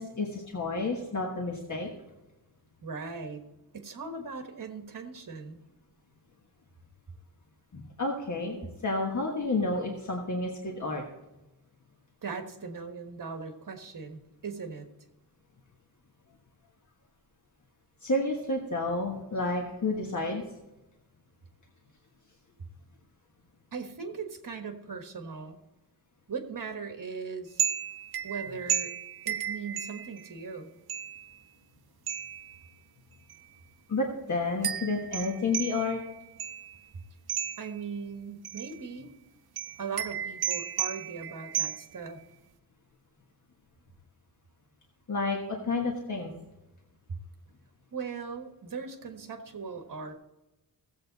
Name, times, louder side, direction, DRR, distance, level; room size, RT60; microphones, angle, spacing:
voice 1, 0.0-1.9 7.7-11.0 18.0-20.4 33.9-36.0 45.1-46.3, left 3 dB, 50° left, 0 dB, 1.4 m, -30 dB
voice 2, 2.8-3.4 3.7-5.6 12.2-14.9 23.7-25.6 26.3-27.6 28.2-28.9 29.2-30.7 37.6-39.1 39.8-42.2 47.1-47.2 47.9-50.1, right 5 dB, 55° right, 5 dB, 1.5 m, -39 dB
sound 1, 27.6-30.4 30.9-31.4 32.1-32.6 33.3-33.5 34.6-36.8 37.3-37.8 38.4-38.9 39.6-42.1, right 9 dB, 70° right, 0.6 m, -34 dB
16.0 x 7.8 x 4.1 m, 0.98 s
wide cardioid pair, 140°, 39 cm